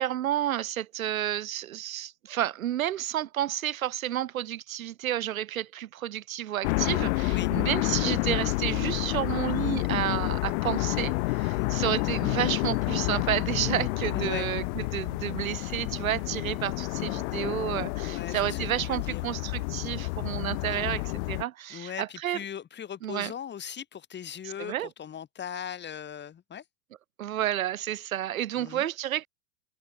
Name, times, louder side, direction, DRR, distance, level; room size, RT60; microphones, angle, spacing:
voice 1, 0.0-22.4 23.0-23.3 24.6-24.9 27.2-29.3, right 12 dB, 85° right, 1.2 m, -31 dB
sound 1, 6.6-21.4, left 25 dB, 55° left, 0.9 m, -29 dB
voice 2, 14.1-14.5 18.0-19.2 20.6-20.8 21.7-26.6 28.6-28.9, left 9 dB, 25° left, 3.7 m, -39 dB
hypercardioid pair, 110°, 40 cm